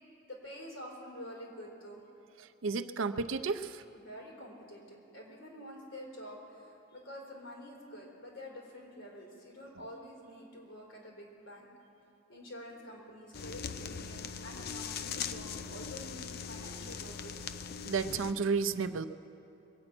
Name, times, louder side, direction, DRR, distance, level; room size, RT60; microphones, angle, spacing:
voice 1, 0.3-2.0 3.9-11.7 12.3-17.4, equal, 75° left, -2 dB, 3.9 m, -48 dB
voice 2, 2.4-3.8 17.8-19.1, right 5 dB, 75° right, 11 dB, 0.6 m, -32 dB
sound 1, 13.3-18.3, left 6 dB, 50° left, 0.4 m, -40 dB
22.5 x 8.8 x 6.0 m, 3.0 s
head